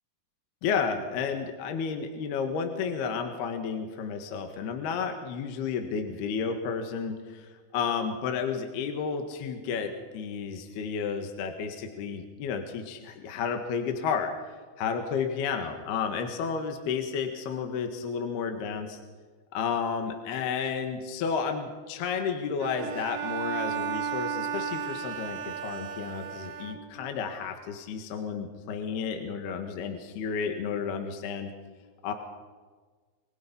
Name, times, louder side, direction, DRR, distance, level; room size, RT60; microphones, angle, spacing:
voice 1, 0.6-14.3 14.8-19.0 19.5-31.5 32.0-32.1, left 6 dB, 65° left, 5 dB, 3.4 m, -32 dB
Bowed string instrument, 22.6-27.2, right 8 dB, 85° right, 4.1 m, -34 dB
27.0 x 24.0 x 5.6 m, 1.4 s
omnidirectional pair, 5.5 m